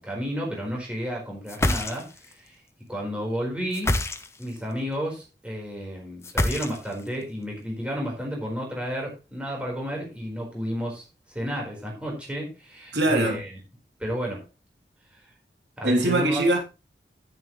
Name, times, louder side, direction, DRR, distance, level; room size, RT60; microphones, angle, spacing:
voice 1, 0.0-2.6 2.9-3.9 4.4-13.6 14.0-14.4 15.8-16.4, equal, 5° right, 4.6 m, -32 dB
sound 1, 1.5-2.3 3.7-4.6 6.2-7.1, left 1 dB, 15° left, 0.9 m, -26 dB
voice 2, 12.9-13.4 15.8-16.6, right 1 dB, 85° right, 3.4 m, -22 dB
11.5 x 9.8 x 3.2 m
head